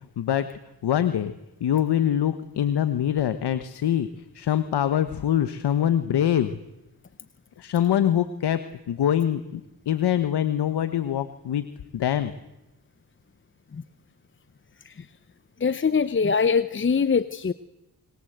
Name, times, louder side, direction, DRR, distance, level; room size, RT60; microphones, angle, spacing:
voice 1, 0.2-0.5 0.8-1.3 1.6-4.1 4.3-6.6 7.6-8.6 8.9-9.6 9.9-11.7 11.9-12.3, left 10 dB, 85° left, 11 dB, 1.2 m, -24 dB
voice 2, 15.6-17.5, left 5 dB, 30° left, 13 dB, 0.8 m, -23 dB
30.0 x 21.5 x 8.0 m, 0.97 s
cardioid pair, 95°, 39 cm